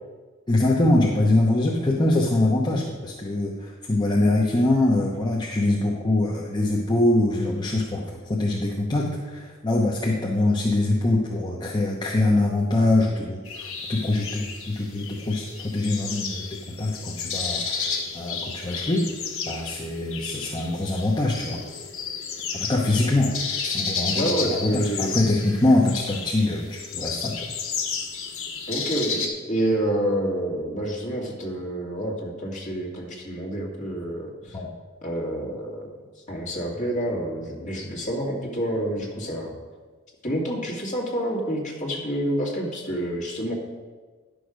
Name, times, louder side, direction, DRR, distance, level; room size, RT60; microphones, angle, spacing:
voice 1, 0.5-19.1 19.5-21.6 22.5-27.5 34.5-34.7, left 2 dB, 20° left, -2 dB, 0.8 m, -23 dB
sound 1, 13.4-29.3, left 5 dB, 75° left, 1.6 m, -32 dB
voice 2, 24.1-25.1 28.7-34.6 35.0-35.9 36.3-39.5 40.2-43.5, right 1 dB, 35° left, -2 dB, 2.1 m, -28 dB
10.5 x 6.4 x 5.0 m, 1.4 s
head